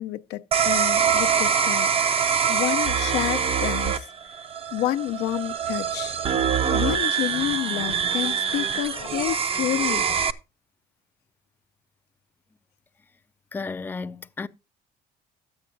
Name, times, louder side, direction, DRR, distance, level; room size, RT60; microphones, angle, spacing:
voice 1, 0.0-4.1 4.7-6.1 6.7-10.1, left 14 dB, 85° left, 0.6 m, -29 dB
sound 1, 0.5-10.3, right 7 dB, 35° right, 0.6 m, -24 dB
voice 2, 13.5-14.5, left 4 dB, 10° left, 0.4 m, -33 dB
13.0 x 8.8 x 2.6 m
cardioid pair, 110°, 17 cm